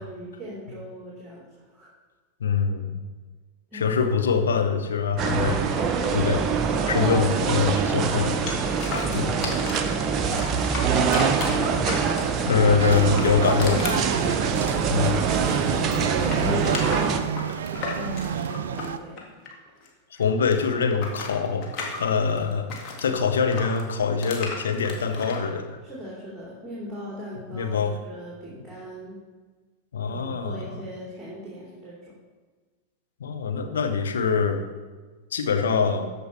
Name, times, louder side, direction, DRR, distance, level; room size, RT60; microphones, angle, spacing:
voice 1, 0.0-1.9 3.7-3.9 9.0-10.2 10.5-12.3 14.2-14.8 15.2-17.4 17.7-19.3 22.9-23.1 25.8-29.2 30.0-32.1, equal, 10° right, -6 dB, 2.8 m, -39 dB
voice 2, 2.4-3.0 3.7-5.6 6.1-6.4 6.9-8.4 9.1-9.4 12.5-13.8 14.9-15.2 16.4-16.7 20.2-21.7 22.0-25.7 27.5-27.9 29.9-30.8 33.2-34.6 35.3-36.1, left 5 dB, 65° left, 5 dB, 1.0 m, -24 dB
sound 1, 5.2-17.2, right 6 dB, 30° right, 0.8 m, -24 dB
sound 2, 8.5-9.9 10.3-12.4 12.9-15.4 15.7-19.9 20.1-23.1 23.5-25.4, left 4 dB, 40° left, 1.9 m, -35 dB
sound 3, 12.8-19.0, right 8 dB, 65° right, 0.3 m, -30 dB
13.0 x 5.2 x 4.5 m, 1.4 s
figure-of-eight pair, 90°, 0 cm